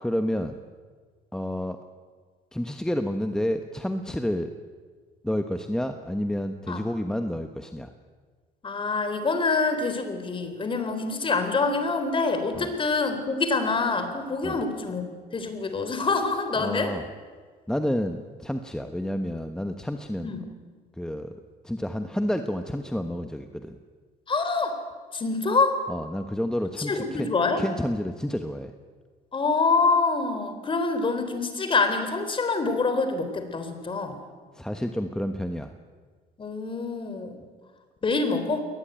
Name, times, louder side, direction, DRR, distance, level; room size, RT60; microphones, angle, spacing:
voice 1, 0.0-0.6 1.3-1.8 2.5-4.5 5.2-7.9 12.5-12.7 14.4-14.6 16.6-17.0 17.7-20.4 21.0-21.3 21.6-23.8 25.9-27.3 27.6-28.7 34.5-35.7, equal, 5° left, 7 dB, 1.2 m, -29 dB
voice 2, 8.6-15.0 15.3-16.9 20.2-20.4 24.3-24.7 25.1-25.8 26.8-27.6 29.3-34.2 36.4-37.4 38.0-38.6, left 3 dB, 30° left, 8 dB, 3.8 m, -26 dB
22.0 x 19.0 x 9.1 m, 1.5 s
cardioid pair, 110°, 17 cm